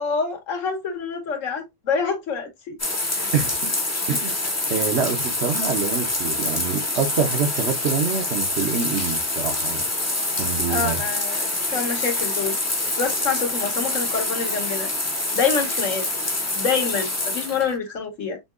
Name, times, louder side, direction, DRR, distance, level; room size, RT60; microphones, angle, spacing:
voice 1, 0.0-2.8 3.1-3.3 10.7-12.6 13.0-14.9 15.3-16.0 16.5-18.4, left 5 dB, 70° left, 1.3 m, -26 dB
sound 1, 2.8-17.7, left 2 dB, 20° left, 0.5 m, -26 dB
voice 2, 3.3-3.7 4.1-4.3 4.7-9.8 10.3-11.0, right 6 dB, 60° right, 0.8 m, -26 dB
5.2 x 2.8 x 2.4 m
omnidirectional pair, 1.4 m